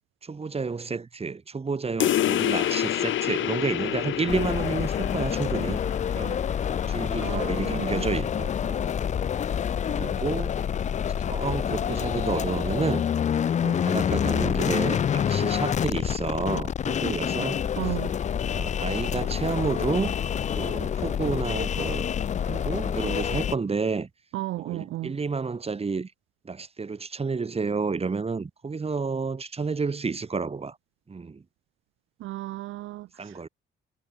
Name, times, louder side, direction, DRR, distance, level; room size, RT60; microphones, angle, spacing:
voice 1, 0.2-5.8 6.1-6.4 6.9-8.9 9.9-10.6 11.3-13.0 13.6-17.6 18.5-20.2 20.6-22.1 22.4-24.1 24.6-26.1 26.4-30.8 31.1-31.4 33.2-33.5, right 4 dB, 30° right, 4.1 m, -30 dB
sound 1, 2.0-7.0, left 12 dB, 75° left, 2.9 m, -28 dB
sound 2, 4.3-23.6, left 8 dB, 35° left, 0.4 m, -27 dB
voice 2, 7.2-8.0 17.7-18.2 24.3-25.2 32.2-33.5, right 16 dB, 85° right, 0.8 m, -34 dB
cardioid pair, 90°, 20 cm